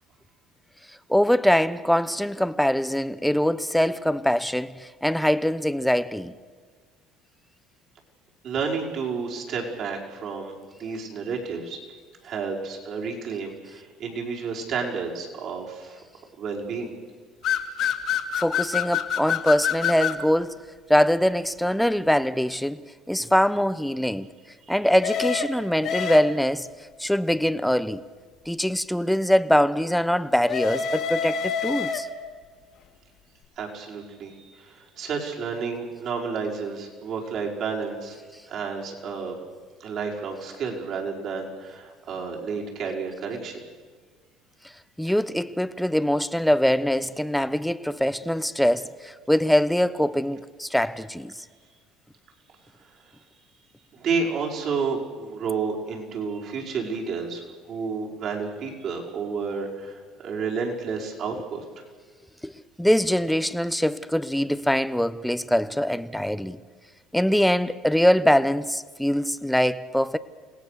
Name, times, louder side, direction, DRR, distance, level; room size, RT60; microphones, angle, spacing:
voice 1, 1.1-6.3 18.4-24.3 24.7-26.7 27.0-28.0 28.5-32.1 45.0-51.3 62.4-62.5 62.8-66.6 67.1-70.2, equal, ahead, 0.9 m, -23 dB
voice 2, 8.4-10.5 10.8-11.8 12.2-16.0 16.4-16.9 24.7-24.8 33.6-38.2 38.5-39.4 39.8-43.6 53.9-61.8, right 5 dB, 55° right, 5.4 m, -31 dB
sound 1, 17.4-20.2 25.0-26.6 30.5-32.3, left 8 dB, 60° left, 2.5 m, -27 dB
29.0 x 18.0 x 6.8 m
supercardioid pair, 90°, 0 cm